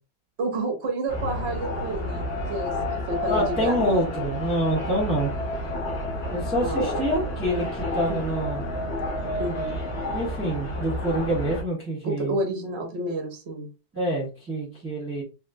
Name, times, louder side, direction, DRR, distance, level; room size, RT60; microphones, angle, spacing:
voice 1, 0.4-2.7 3.1-3.9 6.6-6.9 7.5-7.7 8.1-8.2 9.4-9.8 12.0-13.7, right 2 dB, 55° right, 3 dB, 0.7 m, -30 dB
sound 1, 1.1-11.6, equal, 40° left, 1.4 m, -31 dB
sound 2, 1.5-10.6, left 4 dB, 75° left, 1.3 m, -35 dB
voice 2, 3.3-5.3 6.3-8.6 10.1-12.4 13.9-15.2, equal, 10° right, -7 dB, 1.1 m, -26 dB
3.4 x 2.8 x 2.6 m, 0.32 s
omnidirectional pair, 2.0 m